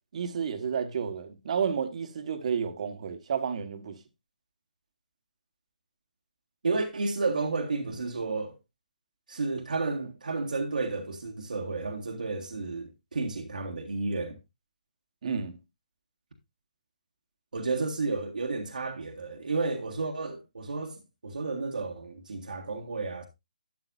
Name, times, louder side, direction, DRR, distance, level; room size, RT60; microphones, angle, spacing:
voice 1, 0.1-3.9 15.2-15.6, right 7 dB, 50° right, 1.6 m, -31 dB
voice 2, 6.6-8.6 9.3-14.4 17.5-23.3, right 3 dB, 70° right, 1.7 m, -32 dB
12.0 x 8.7 x 2.6 m
figure-of-eight pair, 145°, 5 cm